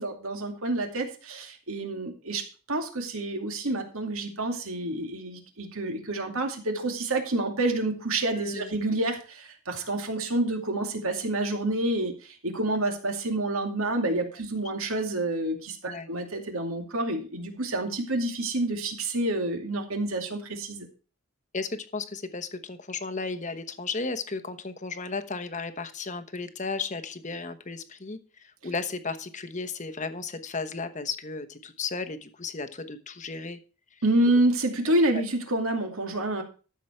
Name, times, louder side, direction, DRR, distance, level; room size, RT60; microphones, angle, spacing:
voice 1, 0.0-20.9 34.0-36.4, right 2 dB, 70° right, 4 dB, 2.4 m, -28 dB
voice 2, 8.3-8.7 15.8-16.1 21.5-33.6 33.9-34.0 34.8-35.2, left 4 dB, 35° left, 10 dB, 1.1 m, -34 dB
13.0 x 7.2 x 4.5 m, 0.36 s
head